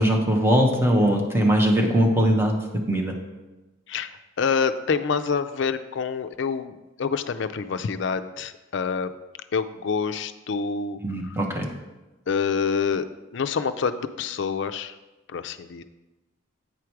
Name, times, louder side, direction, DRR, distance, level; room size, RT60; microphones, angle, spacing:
voice 1, 0.0-2.6 2.9-3.1 11.0-11.7, equal, 10° right, 1 dB, 1.0 m, -20 dB
voice 2, 4.4-9.1 9.5-11.0 12.3-13.1 13.3-14.9 15.3-15.8, left 5 dB, 65° left, 10 dB, 0.4 m, -27 dB
8.9 x 4.9 x 4.6 m, 1.1 s
head